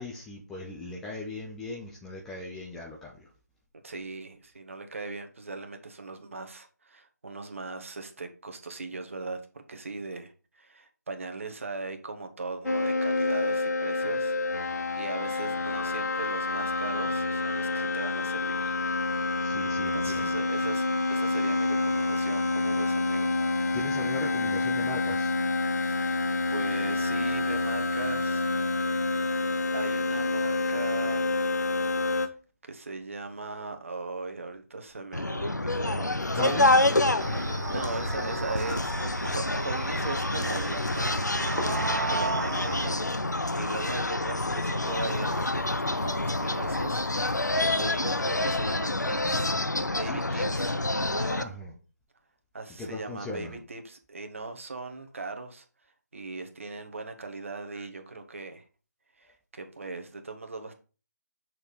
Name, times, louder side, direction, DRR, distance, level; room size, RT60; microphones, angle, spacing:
voice 1, 0.0-3.3 19.4-20.4 23.7-25.4 36.3-36.8 49.3-49.4 49.7-50.5 51.4-51.7 52.8-53.6, left 3 dB, 5° left, -3 dB, 0.3 m, -39 dB
voice 2, 3.8-18.7 19.4-19.6 19.9-20.8 21.1-23.3 25.8-28.5 29.7-31.3 32.7-36.9 37.3-43.1 43.5-49.5 49.9-50.7 51.1-51.6 52.5-55.6 56.1-58.6 59.2-60.7, right 3 dB, 50° right, 6 dB, 1.3 m, -39 dB
sound 1, 12.6-32.3, left 3 dB, 70° left, 1.1 m, -28 dB
sound 2, 35.1-51.4, left 2 dB, 85° left, 0.7 m, -27 dB
sound 3, 37.2-43.0, right 4 dB, 70° right, 0.4 m, -35 dB
6.4 x 4.3 x 4.9 m, 0.36 s
figure-of-eight pair, 155°, 9 cm